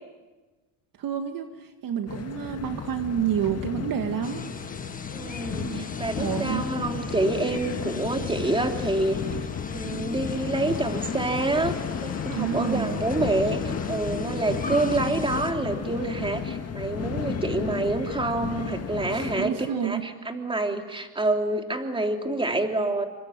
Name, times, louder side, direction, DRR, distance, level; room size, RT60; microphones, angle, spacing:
voice 1, 1.0-4.5 5.6-5.9 6.2-6.6 12.3-12.9 19.0-20.1, right 9 dB, 45° right, 6 dB, 1.9 m, -29 dB
sound 1, 2.1-19.5, left 7 dB, 35° left, 2.2 m, -33 dB
sound 2, 4.2-15.5, left 4 dB, 20° left, 1.6 m, -39 dB
voice 2, 5.1-9.2 9.6-19.5 19.8-23.1, right 2 dB, 10° right, 4 dB, 3.2 m, -27 dB
28.0 x 23.5 x 9.0 m, 1.2 s
cardioid pair, 115°, 45 cm